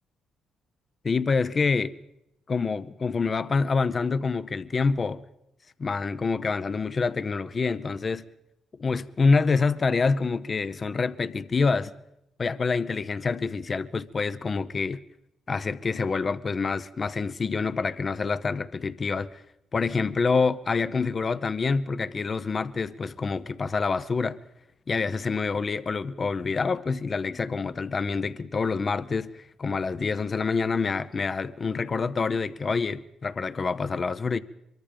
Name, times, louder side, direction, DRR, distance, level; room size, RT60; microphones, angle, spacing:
voice 1, 1.0-1.9 2.5-5.2 5.8-8.2 8.8-11.9 12.4-15.0 15.5-19.4 19.7-24.4 24.9-34.4, left 4 dB, 35° left, 0.8 m, -26 dB
24.0 x 22.5 x 5.2 m
cardioid pair, 90°, 0 cm